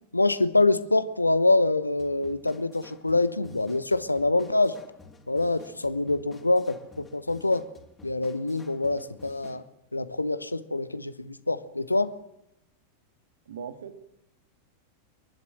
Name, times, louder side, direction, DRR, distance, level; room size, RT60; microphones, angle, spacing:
voice 1, 0.1-4.8 5.3-7.7 8.0-9.6 9.9-12.1, left 2 dB, 85° left, 13 dB, 1.1 m, -25 dB
sound 1, 2.0-9.7, left 4 dB, 15° left, 3.3 m, -52 dB
voice 2, 13.5-14.1, right 7 dB, 65° right, 8 dB, 2.0 m, -39 dB
29.5 x 12.0 x 7.6 m, 0.86 s
figure-of-eight pair, 90°, 0 cm